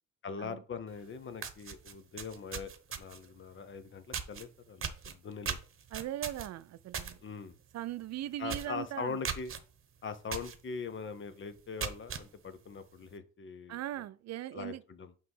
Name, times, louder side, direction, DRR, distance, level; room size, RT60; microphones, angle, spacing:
voice 1, 0.2-2.7 3.0-5.6 7.2-7.5 8.4-9.5 10.0-13.8 14.5-15.1, left 5 dB, 40° left, 0.9 m, -41 dB
sound 1, 1.0-1.1 1.4-3.3 4.1-4.4 4.8-7.1 7.5-7.7 8.0-8.1 8.5-8.8 9.2-9.6 10.3-10.6 11.0-11.1 11.6-12.2, right 7 dB, 45° right, 1.0 m, -38 dB
voice 2, 5.9-7.2 7.7-9.2 13.7-14.8, right 13 dB, 60° right, 0.5 m, -39 dB
5.8 x 3.3 x 5.4 m
supercardioid pair, 70°, 30 cm